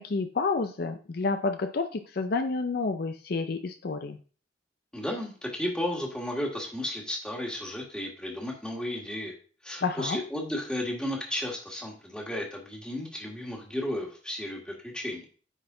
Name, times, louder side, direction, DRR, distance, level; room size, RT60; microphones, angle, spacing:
voice 1, 0.0-4.2 9.8-10.2, left 4 dB, 55° left, 7 dB, 0.5 m, -29 dB
voice 2, 4.9-9.3 9.6-15.3, left 1 dB, 5° left, -1 dB, 1.8 m, -33 dB
10.0 x 4.2 x 3.8 m, 0.40 s
head